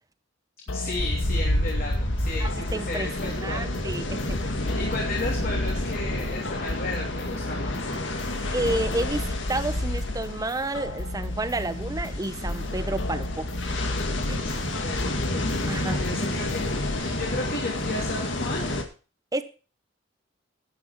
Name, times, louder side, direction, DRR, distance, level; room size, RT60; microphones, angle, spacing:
sound 1, 0.7-17.0, left 1 dB, 90° left, 1.0 m, -34 dB
voice 1, 0.7-3.7 4.5-7.9 8.9-9.0 14.4-18.6, left 2 dB, 50° left, -2 dB, 2.9 m, -35 dB
sound 2, 1.0-18.8, left 1 dB, 70° left, 2.0 m, -30 dB
voice 2, 2.3-4.4 8.5-13.5 14.3-14.5 15.7-16.0 19.3-19.4, right 2 dB, 20° right, 12 dB, 0.9 m, -30 dB
11.0 x 9.3 x 4.4 m, 0.35 s
head